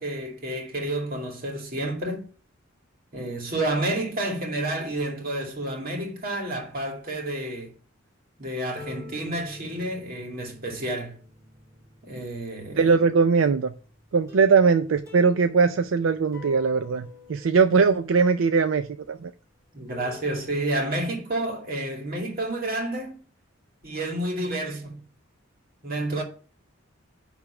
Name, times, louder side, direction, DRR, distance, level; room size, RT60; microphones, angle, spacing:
voice 1, 0.0-2.2 3.1-7.7 8.4-11.2 12.0-12.9 19.7-23.2 23.8-25.0 25.8-26.2, right 1 dB, 50° right, 2.2 m, -30 dB
sound 1, 8.7-20.7, left 4 dB, 15° right, 2.7 m, -49 dB
voice 2, 12.8-13.7 14.1-19.3, right 5 dB, 80° right, 0.5 m, -21 dB
10.0 x 3.5 x 5.9 m
head